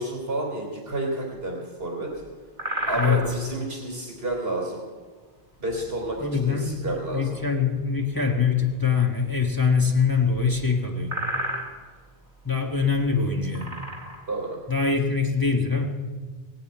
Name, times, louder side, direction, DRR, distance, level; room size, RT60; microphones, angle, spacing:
voice 1, 0.0-2.1 2.9-4.8 5.6-7.4 14.3-14.6, right 2 dB, 70° right, -1 dB, 3.4 m, -30 dB
sound 1, 2.4-3.4 6.5-6.6 10.0-10.1 10.5-10.6 11.0-11.8 12.5-12.6 13.3-14.3, right 1 dB, 45° right, 2.6 m, -31 dB
voice 2, 3.0-3.4 6.2-11.2 12.4-13.8 14.7-15.9, left 5 dB, 20° left, 0 dB, 1.5 m, -23 dB
18.0 x 9.0 x 8.8 m, 1.4 s
omnidirectional pair, 1.1 m